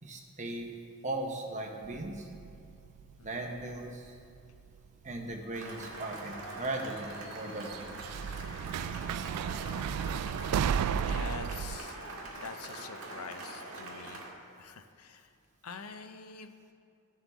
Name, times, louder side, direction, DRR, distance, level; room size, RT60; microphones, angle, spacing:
voice 1, 0.0-0.7 1.0-2.3 3.2-4.1 5.0-7.8, right 2 dB, 35° right, 2 dB, 1.1 m, -38 dB
sound 1, 1.8-3.9 4.2-4.9 5.9-6.0 7.7-11.8, right 7 dB, 90° right, 0.3 m, -33 dB
voice 2, 3.2-3.5 10.9-12.0 12.3-14.2 14.6-15.3 15.6-16.5, left 5 dB, 75° left, 8 dB, 0.6 m, -45 dB
Cheering / Applause, 5.5-14.3, right 2 dB, 70° right, 1.8 m, -43 dB
15.5 x 7.4 x 3.6 m, 2.5 s
head